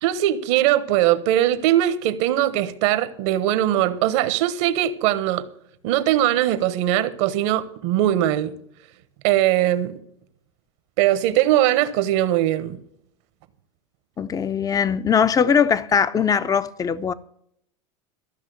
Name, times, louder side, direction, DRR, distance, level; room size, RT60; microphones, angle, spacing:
voice 1, 0.0-5.5 5.8-8.5 9.2-10.0 11.0-12.8, right 13 dB, 65° right, 1.2 m, -20 dB
voice 2, 14.2-17.1, left 7 dB, 25° left, 0.7 m, -20 dB
14.0 x 6.3 x 7.7 m
hypercardioid pair, 100°, 16 cm